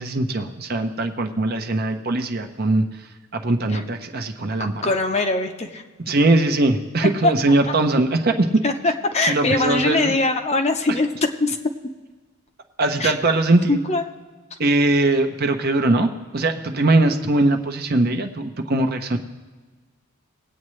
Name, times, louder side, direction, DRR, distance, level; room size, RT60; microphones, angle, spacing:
voice 1, 0.0-2.8 3.3-4.9 6.1-8.5 9.3-10.1 12.8-13.8 14.6-19.2, right 2 dB, 45° right, 5 dB, 0.8 m, -21 dB
voice 2, 4.8-5.8 7.2-7.3 8.6-11.1 11.4-11.6 13.0-13.1 13.7-14.0, left 2 dB, 30° left, 6 dB, 0.7 m, -21 dB
20.5 x 8.6 x 3.2 m, 1.3 s
head